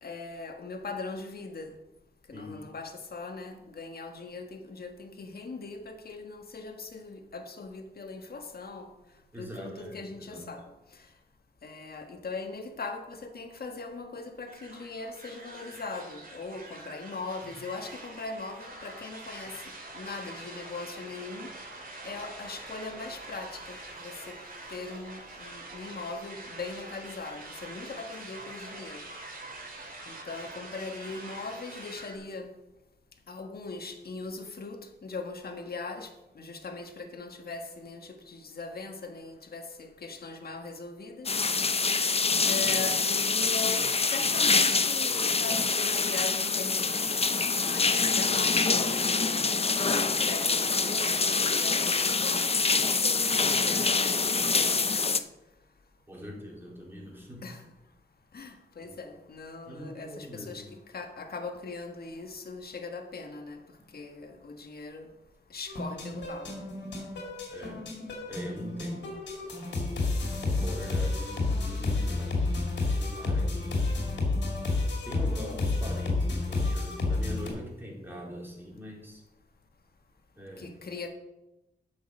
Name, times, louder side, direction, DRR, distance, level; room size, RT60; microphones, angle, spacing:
voice 1, 0.0-1.8 2.3-8.9 9.4-10.6 11.6-19.6 19.9-21.5 22.0-24.4 24.7-29.0 30.1-32.5 33.3-41.4 42.4-47.2 47.6-55.2 57.4-57.6 58.3-60.7 60.9-63.6 63.9-65.1 65.5-66.6 80.6-81.1, left 3 dB, 60° left, 1.5 m, -40 dB
voice 2, 9.3-10.5 17.5-17.6 56.1-57.5 58.8-59.0 59.7-60.7 63.8-63.9 67.5-67.8 68.3-69.2 70.4-72.4 72.8-74.0 74.9-79.2 80.4-80.7, equal, 10° right, 4.0 m, -42 dB
sound 1, 14.5-32.2, right 2 dB, 55° right, 2.5 m, -45 dB
sound 2, 41.3-55.2, left 4 dB, 35° left, 0.6 m, -26 dB
sound 3, 65.7-77.5, left 3 dB, 90° left, 2.5 m, -30 dB
8.2 x 6.5 x 6.4 m
cardioid pair, 65°, 18 cm